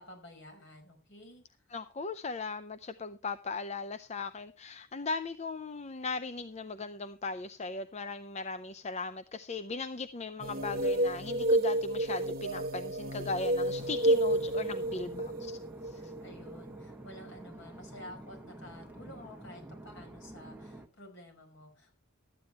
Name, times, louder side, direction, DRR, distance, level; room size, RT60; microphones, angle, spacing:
voice 1, 0.0-1.4 14.8-15.4 16.0-21.9, left 1 dB, 60° left, 3 dB, 5.5 m, -51 dB
voice 2, 1.7-15.6 15.8-16.1, left 3 dB, 30° left, 11 dB, 0.5 m, -38 dB
sound 1, 10.4-16.8, right 1 dB, 45° right, 1.1 m, -30 dB
sound 2, 13.8-20.9, right 1 dB, 5° right, 1.1 m, -49 dB
13.5 x 9.6 x 4.4 m, 0.32 s
head